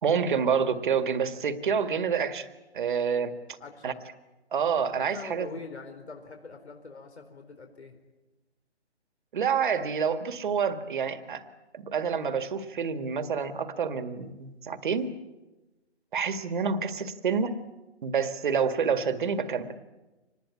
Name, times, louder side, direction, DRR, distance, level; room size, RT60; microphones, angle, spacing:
voice 1, 0.0-2.5 2.7-3.4 3.8-3.9 4.5-5.5 9.3-11.4 11.7-15.1 16.1-17.6 18.0-19.7, right 6 dB, 45° right, 10 dB, 1.9 m, -28 dB
voice 2, 3.6-4.0 5.0-8.0, left 4 dB, 70° left, 5 dB, 4.4 m, -44 dB
26.0 x 20.0 x 9.7 m, 1.1 s
hypercardioid pair, 155°, 34 cm